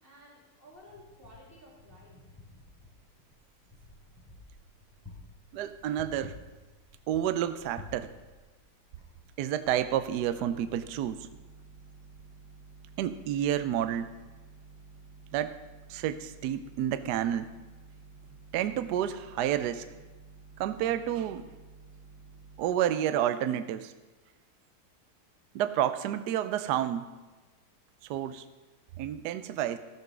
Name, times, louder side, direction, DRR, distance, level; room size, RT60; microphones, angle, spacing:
voice 1, 0.0-2.2, equal, 25° right, -5 dB, 2.5 m, -54 dB
Wind, 0.7-9.6, left 3 dB, 5° left, 3.3 m, -52 dB
voice 2, 5.5-6.4 7.1-8.1 9.4-11.3 13.0-14.1 15.3-15.6 15.9-17.5 18.5-19.9 20.6-21.5 22.6-23.9 25.5-27.1 28.1-28.4 29.0-29.8, right 10 dB, 80° right, 11 dB, 0.9 m, -30 dB
sound 1, 9.6-22.6, right 4 dB, 60° right, 1.4 m, -52 dB
14.0 x 6.0 x 6.0 m, 1.2 s
omnidirectional pair, 2.2 m